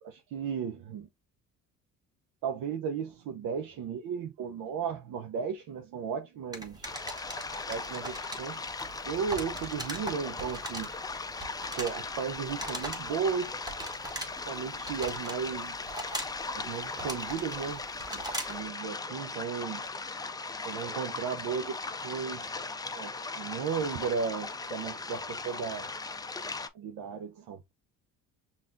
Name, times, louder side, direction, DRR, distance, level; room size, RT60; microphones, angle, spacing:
voice 1, 0.0-1.1 2.4-7.0 7.7-8.7 9.0-10.9 11.7-13.6 14.3-15.9 16.5-18.2 18.5-19.9 20.6-21.8 22.0-22.6 22.9-25.9 26.7-27.7, right 6 dB, 65° right, 0.7 m, -35 dB
sound 1, 6.5-18.7, right 1 dB, 10° right, 1.2 m, -42 dB
sound 2, 6.8-26.7, left 3 dB, 10° left, 0.4 m, -38 dB
5.7 x 2.4 x 2.5 m
cardioid pair, 90°, 37 cm